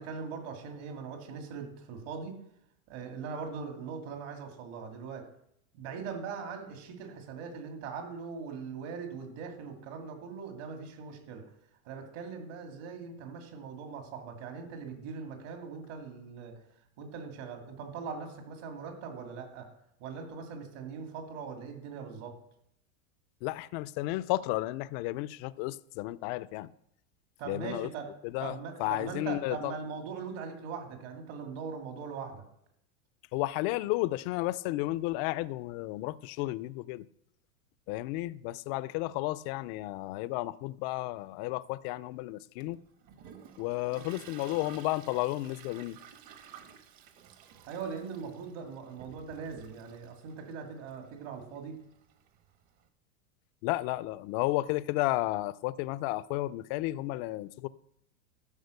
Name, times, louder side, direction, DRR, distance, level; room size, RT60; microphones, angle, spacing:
voice 1, 0.0-2.4 2.9-5.3 5.7-11.4 11.9-16.5 17.0-19.7 20.0-22.3 27.4-28.1 28.4-32.4 47.7-51.8, right 5 dB, 60° right, 2.7 m, -41 dB
voice 2, 23.4-26.7 27.5-27.9 28.2-29.7 33.3-37.0 37.9-42.8 43.6-46.0 53.6-57.7, left 18 dB, 45° left, 0.4 m, -33 dB
Toilet flush, 42.6-52.8, right 8 dB, 45° right, 1.3 m, -54 dB
12.0 x 5.0 x 6.6 m
supercardioid pair, 135°, 41 cm